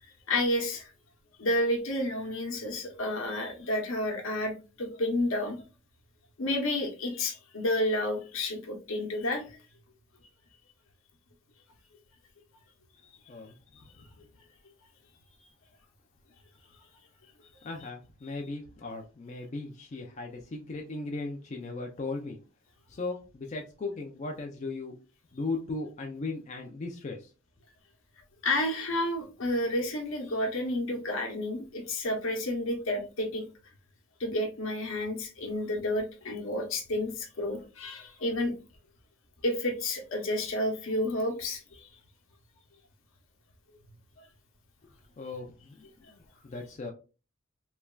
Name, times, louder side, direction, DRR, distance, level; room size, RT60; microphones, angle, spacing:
voice 1, 0.3-0.9 1.4-5.6 6.4-9.5 28.4-33.4 34.2-38.5 39.4-41.9 44.2-44.3, left 1 dB, 75° left, 2 dB, 0.8 m, -30 dB
voice 2, 17.6-22.4 22.9-24.9 25.3-27.3 45.2-45.8 46.1-46.9, left 3 dB, 35° left, 1 dB, 0.3 m, -37 dB
3.2 x 2.3 x 2.2 m, 0.33 s
head